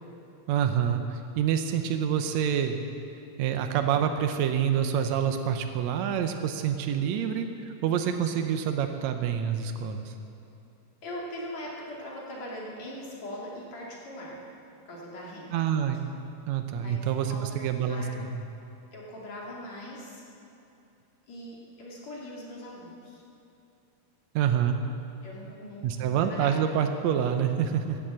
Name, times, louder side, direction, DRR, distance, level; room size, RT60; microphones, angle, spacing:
voice 1, 0.5-2.8 3.4-10.1 15.5-16.0 16.5-18.4 24.3-24.8 25.8-28.0, right 8 dB, 85° right, 6 dB, 1.5 m, -27 dB
voice 2, 6.9-7.3 8.3-8.5 11.0-14.4 14.9-15.7 16.8-17.5 17.8-18.2 18.9-20.2 21.3-23.2 25.2-26.5, left 1 dB, 50° left, -4 dB, 3.6 m, -41 dB
16.5 x 11.5 x 7.6 m, 2.8 s
omnidirectional pair, 4.3 m